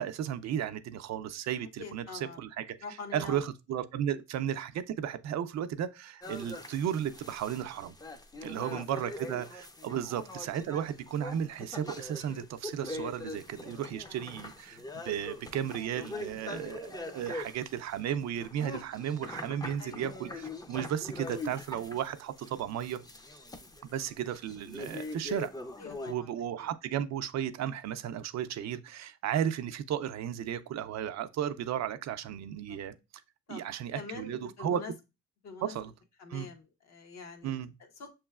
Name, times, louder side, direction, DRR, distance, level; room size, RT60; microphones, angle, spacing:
voice 1, 0.0-2.8 3.1-8.0 8.4-23.0 23.8-25.5 26.1-33.0 33.5-34.8 35.6-35.9 36.3-36.5 37.4-37.7, right 9 dB, 60° right, 0.5 m, -34 dB
voice 2, 1.6-2.4 2.8-3.4 8.4-9.0 9.9-10.0 14.1-14.2 19.8-20.0 25.8-26.3 26.6-26.7 32.7-32.8 33.5-33.6 33.9-34.9 35.4-35.7 36.2-38.1, left 5 dB, 60° left, 1.1 m, -45 dB
sound 1, 6.2-26.1, left 2 dB, 15° left, 0.5 m, -43 dB
6.4 x 3.1 x 2.3 m
cardioid pair, 90°, 30 cm